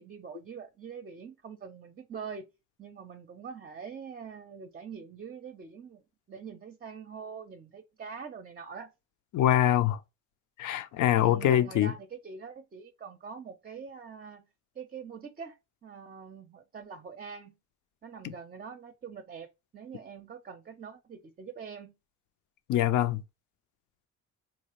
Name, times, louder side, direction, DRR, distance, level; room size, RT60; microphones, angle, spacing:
voice 1, 0.0-2.5 2.8-6.0 6.3-8.9 11.2-14.5 14.7-15.6 15.8-17.6 18.0-22.0, right 6 dB, 30° right, 0.5 m, -44 dB
voice 2, 9.3-10.0 10.6-11.9 18.2-18.3 22.7-23.2, left 12 dB, 75° left, 0.6 m, -24 dB
4.0 x 2.4 x 3.0 m
cardioid pair, 90°, 30 cm